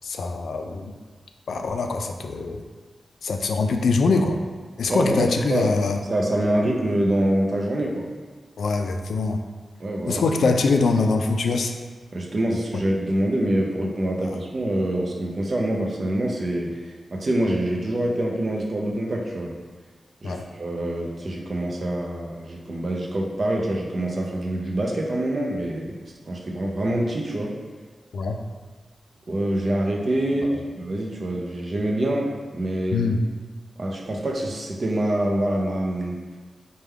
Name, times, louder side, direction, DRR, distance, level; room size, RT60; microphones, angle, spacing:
voice 1, 0.0-0.9 1.5-2.6 3.2-4.4 4.8-6.0 8.6-9.4 10.0-11.7 12.7-12.8 14.2-14.4 20.2-20.4 28.1-28.4 30.4-30.6 32.9-33.2, left 4 dB, 85° left, 5 dB, 0.3 m, -23 dB
voice 2, 4.9-5.7 6.1-8.1 9.8-10.2 12.1-19.5 20.2-26.0 26.3-27.5 29.3-33.0 33.8-36.2, right 1 dB, 40° right, -1 dB, 0.5 m, -25 dB
4.5 x 2.2 x 3.5 m, 1.4 s
wide cardioid pair, 155°, 0 cm